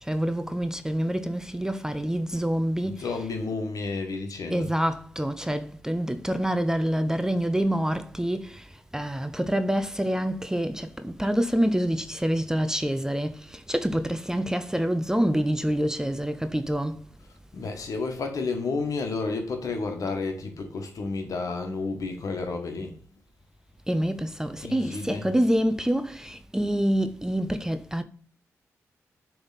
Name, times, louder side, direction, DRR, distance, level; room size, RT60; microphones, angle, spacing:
voice 1, 0.0-3.3 4.5-17.0 23.9-28.0, equal, 10° right, 0.6 m, -27 dB
voice 2, 2.8-4.7 17.5-23.0 24.6-25.3, left 3 dB, 65° left, 1.5 m, -31 dB
6.8 x 3.5 x 4.1 m
supercardioid pair, 45°, 6 cm